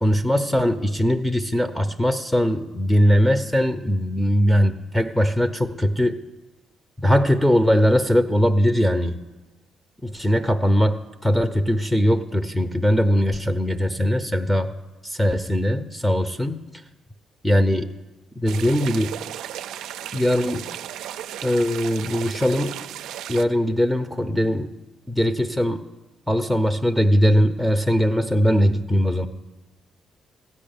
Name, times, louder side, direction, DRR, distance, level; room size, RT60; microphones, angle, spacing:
voice 1, 0.0-6.2 7.0-9.2 10.0-14.7 15.0-16.6 17.4-17.9 18.4-19.2 20.1-20.7 21.4-22.8 23.3-24.7 25.1-25.8 26.3-29.3, equal, 5° left, 10 dB, 0.7 m, -20 dB
sound 1, 18.5-23.4, right 11 dB, 85° right, 0.4 m, -35 dB
15.0 x 5.5 x 8.8 m, 1.1 s
cardioid pair, 90°, 0 cm